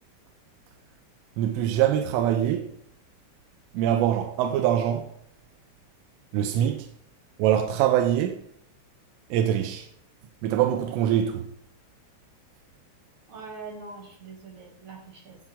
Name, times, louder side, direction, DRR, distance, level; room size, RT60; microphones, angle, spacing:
voice 1, 1.4-2.7 3.7-5.1 6.3-6.9 7.4-8.4 9.3-9.9 10.4-11.4, right 10 dB, 90° right, 3.3 m, -23 dB
voice 2, 13.3-15.4, right 4 dB, 45° right, 3.2 m, -42 dB
13.0 x 7.5 x 3.7 m
omnidirectional pair, 5.6 m